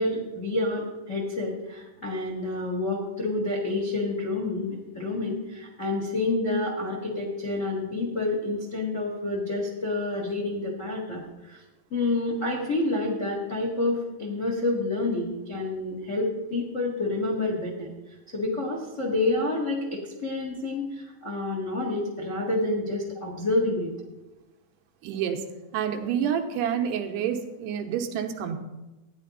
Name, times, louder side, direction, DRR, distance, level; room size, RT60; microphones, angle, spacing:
voice 1, 0.0-11.6 11.9-17.9 18.3-23.9, left 2 dB, 90° left, -1 dB, 0.6 m, -28 dB
voice 2, 25.0-25.5 25.7-28.6, right 8 dB, 85° right, 4 dB, 3.0 m, -28 dB
13.5 x 10.0 x 4.1 m, 1.0 s
omnidirectional pair, 4.7 m